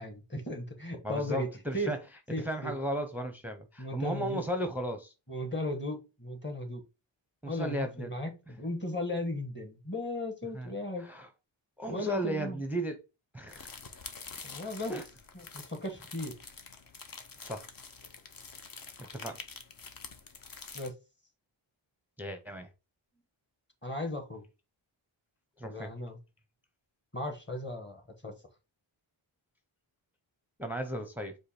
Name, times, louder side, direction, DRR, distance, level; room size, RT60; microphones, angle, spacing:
voice 1, 0.0-1.9 2.3-2.7 3.8-4.4 5.3-6.8 7.5-11.1 11.9-12.6 14.4-15.0 15.3-16.4 20.7-20.9 23.8-24.4 25.6-26.2 27.1-28.3, left 1 dB, 20° left, 1.2 m, -36 dB
voice 2, 1.0-2.0 2.4-5.1 7.4-8.1 10.5-10.7 11.0-11.3 11.8-13.0 13.3-13.7 14.9-15.0 17.4-17.7 19.0-19.4 22.2-22.7 25.6-25.9 30.6-31.4, equal, 5° right, 0.6 m, -35 dB
sound 1, 13.5-20.9, left 5 dB, 45° left, 0.8 m, -47 dB
5.0 x 2.2 x 4.2 m
wide cardioid pair, 90°, 49 cm